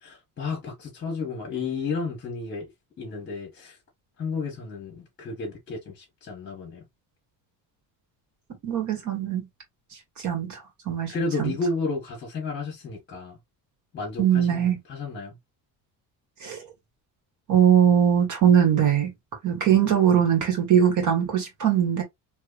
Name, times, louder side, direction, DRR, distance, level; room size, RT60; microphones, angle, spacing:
voice 1, 0.0-2.7 3.0-3.8 4.2-6.8 11.1-13.4 13.9-15.4, left 4 dB, 30° left, 1.5 m, -32 dB
voice 2, 8.6-9.5 10.2-10.6 10.9-11.1 11.4-11.5 14.2-14.8 16.4-16.6 17.5-19.1 19.4-22.0, right 9 dB, 50° right, 1.9 m, -21 dB
3.4 x 2.9 x 2.5 m
cardioid pair, 145°, 38 cm